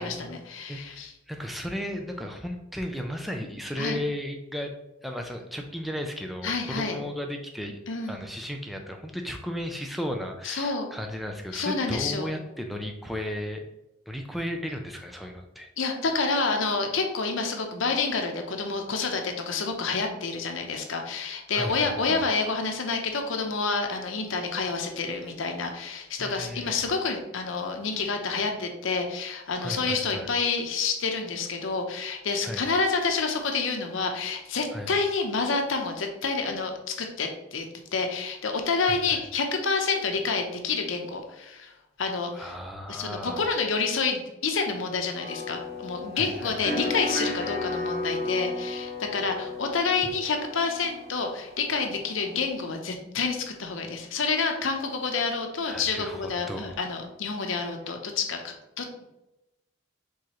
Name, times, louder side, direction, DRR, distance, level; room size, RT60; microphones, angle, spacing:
voice 1, 0.0-1.1 3.8-4.0 6.4-7.0 7.9-8.3 10.4-10.9 11.5-12.3 15.8-37.7 37.9-41.7 42.0-42.5 42.9-59.0, left 4 dB, 80° left, 4 dB, 0.7 m, -28 dB
voice 2, 0.7-4.7 5.0-7.8 8.1-13.6 14.1-15.7 21.5-22.2 25.2-25.3 26.2-26.7 27.9-28.0 29.6-30.3 32.4-32.7 34.7-34.9 38.8-39.2 42.3-43.5 46.1-46.5 55.7-56.8, equal, ahead, 3 dB, 0.4 m, -35 dB
sound 1, 45.2-52.5, left 2 dB, 50° right, 1.3 m, -34 dB
4.7 x 3.7 x 3.0 m, 0.93 s
head